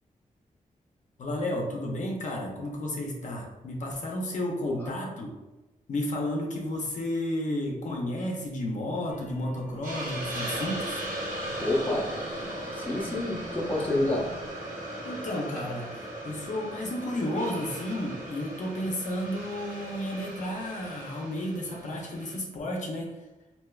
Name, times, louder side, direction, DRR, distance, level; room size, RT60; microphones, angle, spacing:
voice 1, 1.2-5.3 5.9-11.0 15.0-23.1, left 1 dB, 65° left, -1 dB, 0.6 m, -32 dB
sound 1, 9.1-14.5, equal, 15° right, 1.0 m, -46 dB
Hiss, 9.8-22.4, right 1 dB, 75° right, 1.1 m, -38 dB
voice 2, 11.6-12.1 12.8-14.3, left 1 dB, 15° left, -4 dB, 0.7 m, -28 dB
3.2 x 2.7 x 2.3 m, 1.1 s
wide cardioid pair, 135°, 14 cm